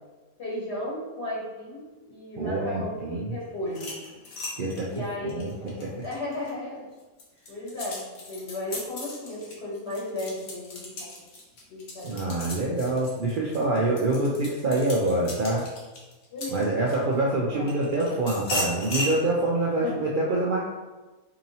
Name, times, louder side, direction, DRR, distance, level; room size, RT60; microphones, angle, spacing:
voice 1, 0.4-3.9 4.9-5.5 6.0-6.8 7.5-8.0 8.3-11.3 11.7-12.3 16.3-17.1 17.5-17.7 19.8-20.1, left 1 dB, 50° left, -8 dB, 1.2 m, -35 dB
voice 2, 2.4-3.3 4.6-4.9 5.3-5.5 5.8-5.9 12.0-15.7 16.5-20.6, right 2 dB, 90° right, -4 dB, 0.4 m, -26 dB
sound 1, 3.7-6.5 7.0-17.1 17.7-19.2, left 1 dB, 80° left, 1.4 m, -36 dB
4.6 x 2.9 x 2.7 m, 1.2 s
omnidirectional pair, 1.5 m